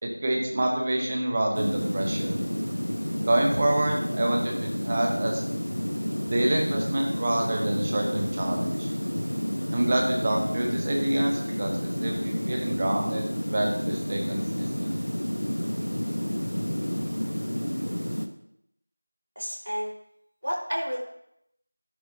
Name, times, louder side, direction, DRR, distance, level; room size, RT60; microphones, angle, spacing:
voice 1, 0.0-2.3 3.3-5.4 6.3-8.9 9.7-14.4 14.8-14.9, right 1 dB, 15° right, 0 dB, 0.9 m, -27 dB
sound 1, 1.5-18.3, equal, 65° left, 1.2 m, -30 dB
voice 2, 19.4-19.9 20.4-21.0, equal, 85° right, -3 dB, 4.4 m, -30 dB
12.0 x 11.0 x 2.8 m, 0.76 s
figure-of-eight pair, 175°, 0 cm